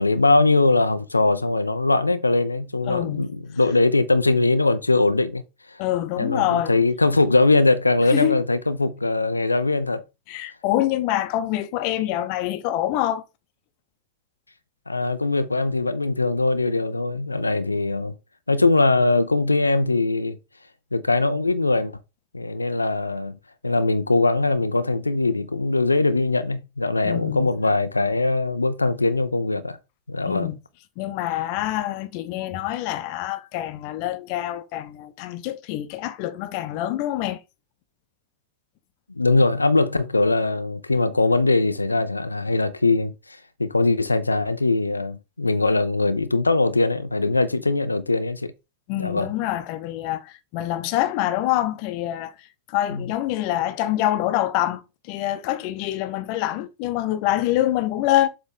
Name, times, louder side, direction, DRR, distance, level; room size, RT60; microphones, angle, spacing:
voice 1, 0.0-5.4 5.7-5.8 6.2-10.0 14.9-18.1 18.5-20.4 20.9-21.9 22.3-23.4 23.6-29.8 30.1-30.5 39.2-48.5 49.0-49.3 52.9-53.0, left 3 dB, 80° left, 0.6 m, -21 dB
voice 2, 2.9-3.3 5.8-6.7 8.1-8.4 10.3-13.2 27.0-27.5 30.3-30.6 31.0-37.4 48.9-58.3, left 14 dB, 45° left, 0.9 m, -25 dB
7.3 x 3.3 x 5.2 m
figure-of-eight pair, 90°, 0 cm